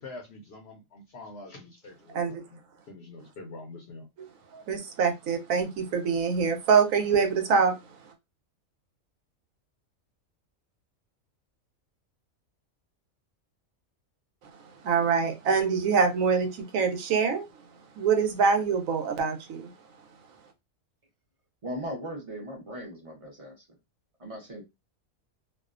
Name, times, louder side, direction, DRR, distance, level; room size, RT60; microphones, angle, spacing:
voice 1, 0.0-2.6 2.9-4.1, left 2 dB, 65° left, 0.7 m, -45 dB
voice 2, 4.5-7.7 14.8-17.4 18.0-19.7, right 5 dB, 80° right, 1.0 m, -24 dB
voice 3, 21.6-23.6 24.2-24.6, equal, 35° right, 0.6 m, -38 dB
2.6 x 2.1 x 2.4 m
omnidirectional pair, 1.4 m